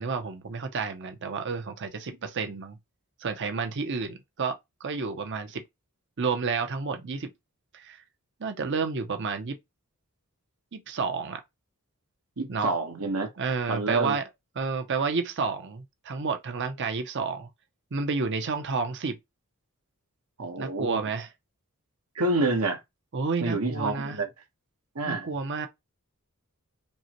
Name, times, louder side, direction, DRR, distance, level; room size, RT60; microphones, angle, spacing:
voice 1, 0.0-2.8 3.2-5.6 6.2-7.3 7.7-8.0 8.4-9.6 10.7-11.4 12.5-12.7 13.4-14.2 14.6-17.5 17.9-19.2 20.6-21.3 23.1-24.2 25.1-25.7, right 4 dB, 55° right, 0.6 m, -30 dB
voice 2, 12.4-13.3 13.7-14.2 20.4-21.1 22.1-22.8 23.4-24.3 24.9-25.3, right 2 dB, 80° right, 1.2 m, -28 dB
5.3 x 2.2 x 2.9 m
head